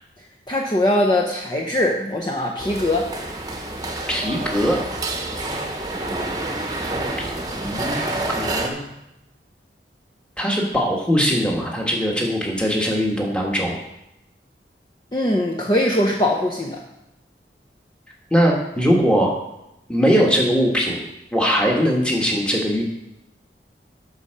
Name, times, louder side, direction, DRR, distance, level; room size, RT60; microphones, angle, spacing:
voice 1, 0.5-3.1 15.1-16.8, left 1 dB, 25° left, -1 dB, 0.7 m, -21 dB
sound 1, 2.6-8.7, right 2 dB, 20° right, 1.0 m, -28 dB
voice 2, 4.1-4.8 7.2-8.0 8.3-8.9 10.4-13.7 18.3-19.3 19.9-21.0 21.3-22.8, equal, 5° left, -1 dB, 1.5 m, -20 dB
8.1 x 5.6 x 6.6 m, 0.90 s
head